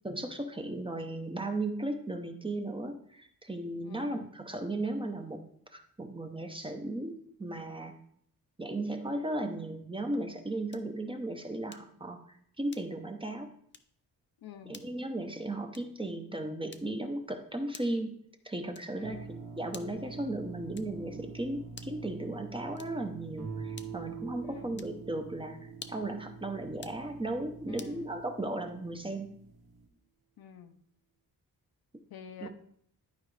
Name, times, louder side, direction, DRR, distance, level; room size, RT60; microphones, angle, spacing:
voice 1, 0.0-5.4 5.7-7.9 8.6-12.2 12.6-13.5 14.7-18.2 18.4-29.3 32.4-32.5, right 1 dB, 15° right, 5 dB, 0.7 m, -36 dB
voice 2, 3.8-4.2 14.4-14.8 18.9-19.3 24.4-24.8 27.7-28.2 30.4-30.8 32.1-32.5, left 8 dB, 75° left, 8 dB, 0.8 m, -49 dB
sound 1, 10.7-11.0 11.7-12.0 12.7-13.1 13.7-14.0 14.7-15.0 15.7-16.0 16.7-17.1 17.7-18.1 18.7-19.1 19.7-20.1 20.7-21.1 21.7-22.1 22.7-23.1 23.7-24.1 24.7-25.0 25.7-26.2 26.7-27.0 27.8-28.0, left 6 dB, 30° left, 0.5 m, -51 dB
sound 2, 19.0-29.9, right 3 dB, 90° right, 1.3 m, -48 dB
Guitar, 23.4-28.2, right 8 dB, 60° right, 1.2 m, -45 dB
11.5 x 4.8 x 3.3 m, 0.67 s
wide cardioid pair, 115°, 37 cm